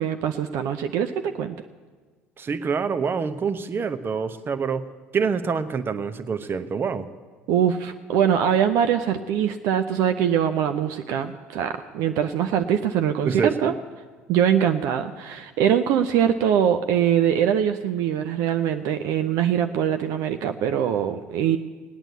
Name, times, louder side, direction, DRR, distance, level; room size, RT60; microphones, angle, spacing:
voice 1, 0.0-1.6 7.5-13.7 14.3-21.6, right 9 dB, 65° right, 7 dB, 0.6 m, -23 dB
voice 2, 2.4-4.9 5.1-7.1 13.2-13.7, right 5 dB, 35° right, 12 dB, 1.0 m, -26 dB
18.0 x 9.0 x 8.1 m, 1.5 s
hypercardioid pair, 65°, 6 cm